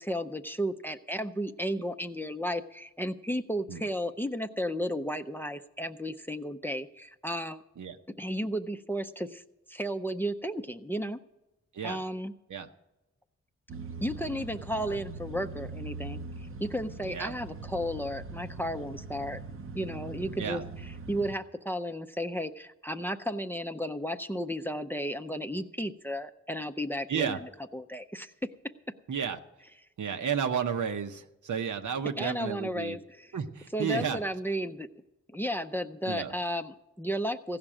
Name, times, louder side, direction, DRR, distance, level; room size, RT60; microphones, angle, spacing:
voice 1, 0.0-7.6 8.2-9.4 9.7-11.2 11.8-12.3 14.0-16.2 16.6-19.4 19.7-20.6 21.1-28.3 32.2-33.3 33.7-34.9 35.3-37.6, equal, 5° left, 9 dB, 0.5 m, -33 dB
sound 1, 13.7-21.4, right 4 dB, 45° right, 0.6 m, -42 dB
voice 2, 27.1-27.4 29.1-29.4 30.0-33.0 33.3-34.2 36.1-36.3, right 7 dB, 85° right, 6 dB, 0.9 m, -32 dB
16.0 x 6.0 x 8.8 m, 0.98 s
wide cardioid pair, 120°, 30 cm